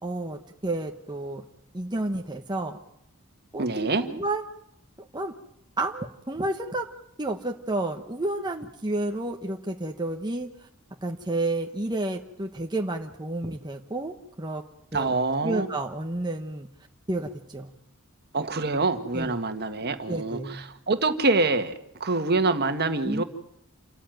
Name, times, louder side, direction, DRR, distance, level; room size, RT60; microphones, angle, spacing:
voice 1, 0.0-1.4 1.7-2.8 3.5-4.4 5.0-5.3 5.8-6.9 7.2-10.5 11.0-14.6 14.9-15.1 15.4-16.7 17.1-17.7 19.1-19.4 20.1-20.6 23.0-23.2, right 2 dB, 20° right, 3 dB, 1.1 m, -30 dB
voice 2, 3.6-4.0 14.9-15.7 18.3-23.2, right 3 dB, 50° right, 8 dB, 1.8 m, -25 dB
28.0 x 14.0 x 9.3 m, 0.77 s
head